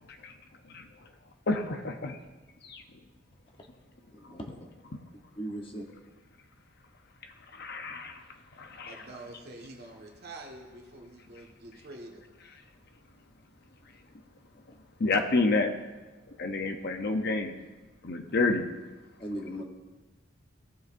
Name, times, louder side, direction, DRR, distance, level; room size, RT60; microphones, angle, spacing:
voice 1, 1.5-2.2 2.6-2.8 7.5-8.2 8.6-9.1 15.0-15.7 16.4-17.6 18.0-18.6, left 3 dB, 55° left, 5 dB, 0.7 m, -29 dB
voice 2, 5.4-5.8 19.2-19.6, right 1 dB, 25° left, 1 dB, 1.1 m, -37 dB
voice 3, 8.8-12.2, right 2 dB, 50° right, 0 dB, 1.6 m, -46 dB
16.5 x 6.5 x 2.6 m, 1.2 s
head